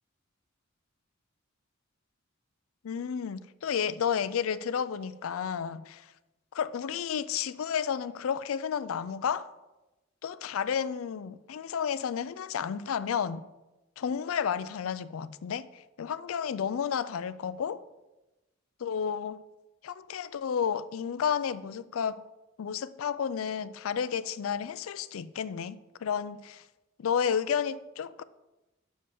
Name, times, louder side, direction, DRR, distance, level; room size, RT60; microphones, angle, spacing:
voice 1, 2.8-6.0 6.5-9.5 10.2-13.4 14.0-15.7 16.0-17.8 18.8-19.4 19.8-22.2 22.6-26.6 27.0-28.2, left 7 dB, 75° left, 0.4 m, -31 dB
6.6 x 5.3 x 7.1 m
head